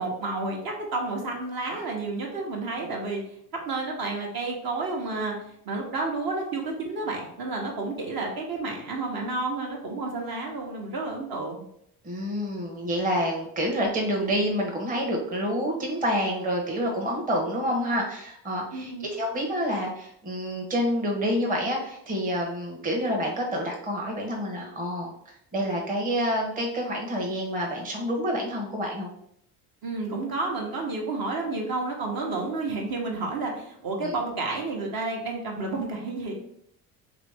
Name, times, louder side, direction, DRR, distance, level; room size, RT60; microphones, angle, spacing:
voice 1, 0.0-11.6 18.7-19.1 29.8-36.3, right 3 dB, 50° right, 0 dB, 1.1 m, -31 dB
voice 2, 12.0-29.1 34.0-34.1, equal, 20° right, 0 dB, 0.9 m, -28 dB
3.0 x 2.9 x 3.4 m, 0.71 s
hypercardioid pair, 65°, 47 cm